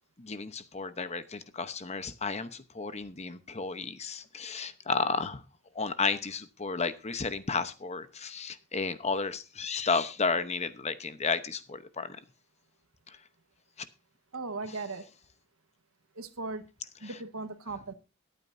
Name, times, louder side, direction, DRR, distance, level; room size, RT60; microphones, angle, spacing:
voice 1, 0.2-5.4 5.7-12.2 17.1-17.2, left 4 dB, 30° left, 0.9 m, -32 dB
voice 2, 14.3-15.0 16.1-16.6 17.0-17.9, right 3 dB, 85° right, 1.3 m, -37 dB
23.0 x 8.9 x 2.7 m
head